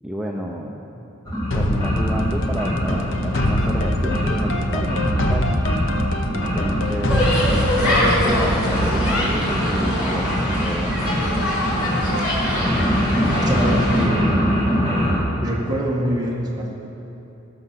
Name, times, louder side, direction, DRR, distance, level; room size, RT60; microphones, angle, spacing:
voice 1, 0.0-1.0 1.5-5.5 6.3-7.3 7.8-11.0, equal, 5° right, -2 dB, 0.5 m, -30 dB
sound 1, 1.2-15.2, equal, 15° left, 2.1 m, -24 dB
sound 2, 1.5-10.4, left 1 dB, 60° left, 0.9 m, -24 dB
sound 3, 7.1-14.1, left 1 dB, 80° left, 3.2 m, -23 dB
voice 2, 13.4-14.6 15.4-16.7, right 1 dB, 20° right, -3 dB, 1.6 m, -25 dB
19.5 x 6.8 x 5.8 m, 3.0 s
head